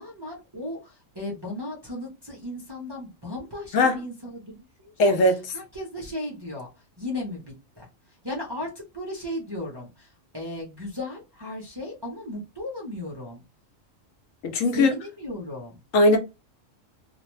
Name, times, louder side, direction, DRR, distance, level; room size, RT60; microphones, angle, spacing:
voice 1, 0.0-6.7 7.0-7.4 7.8-13.4 14.7-15.8, left 1 dB, 30° right, 0.5 m, -36 dB
voice 2, 5.0-5.5 14.4-14.9 15.9-16.2, left 2 dB, 80° left, 1.0 m, -19 dB
2.5 x 2.1 x 3.0 m
omnidirectional pair, 1.3 m